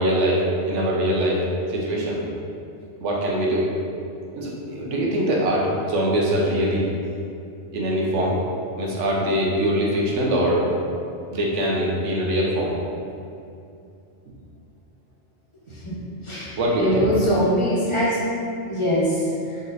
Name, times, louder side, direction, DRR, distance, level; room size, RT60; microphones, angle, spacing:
voice 1, 0.0-1.4 1.7-2.2 3.0-3.7 4.3-6.8 7.7-8.4 8.8-10.7 11.3-12.7 16.6-17.1, equal, 85° right, -3 dB, 1.1 m, -22 dB
voice 2, 16.8-18.4 18.7-19.6, equal, 25° left, -8 dB, 1.0 m, -22 dB
4.0 x 3.1 x 4.0 m, 2.6 s
omnidirectional pair, 1.2 m